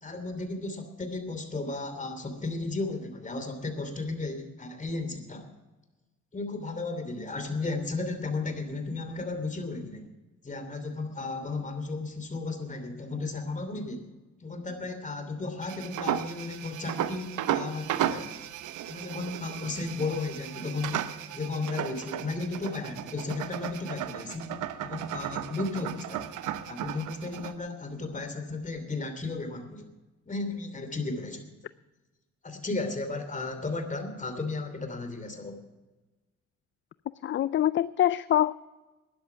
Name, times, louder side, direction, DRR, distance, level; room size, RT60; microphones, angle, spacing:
voice 1, 0.0-5.4 6.3-10.1 10.4-14.0 14.4-18.3 18.9-21.0 21.3-24.5 24.8-26.3 26.7-29.9 30.3-31.4 32.4-35.6, left 3 dB, 25° left, 7 dB, 2.9 m, -34 dB
sound 1, 15.6-27.5, right 11 dB, 80° right, 0.9 m, -35 dB
voice 2, 37.2-38.6, left 12 dB, 40° left, 17 dB, 0.4 m, -24 dB
12.5 x 10.5 x 6.9 m, 1.1 s
cardioid pair, 90°, 30 cm